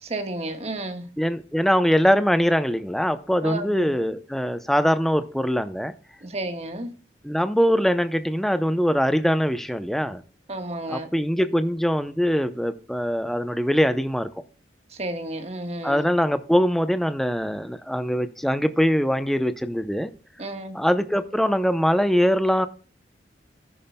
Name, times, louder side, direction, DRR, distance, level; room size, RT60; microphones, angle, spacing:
voice 1, 0.0-1.1 3.4-3.9 6.2-6.9 10.5-11.1 14.9-16.1 20.4-20.8, right 2 dB, 35° right, 1.4 m, -32 dB
voice 2, 1.2-5.9 7.2-10.2 10.9-14.3 15.8-20.1 20.7-22.7, equal, ahead, 0.6 m, -22 dB
13.0 x 11.0 x 2.2 m
head